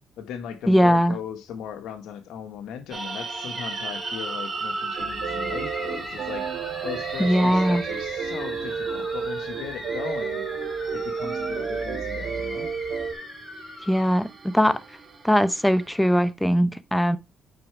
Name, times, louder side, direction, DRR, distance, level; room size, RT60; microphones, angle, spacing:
voice 1, 0.2-6.5 6.8-10.4 10.9-12.7, left 8 dB, 85° left, 1.7 m, -38 dB
voice 2, 0.7-1.2 7.2-7.8 13.8-14.8 15.2-17.2, equal, 5° left, 0.9 m, -20 dB
sound 1, 2.9-16.3, right 4 dB, 40° right, 2.8 m, -37 dB
sound 2, 3.5-14.3, left 2 dB, 30° left, 3.9 m, -40 dB
sound 3, 5.0-13.1, right 6 dB, 70° right, 3.1 m, -31 dB
8.8 x 5.8 x 3.5 m
cardioid pair, 90°, 0 cm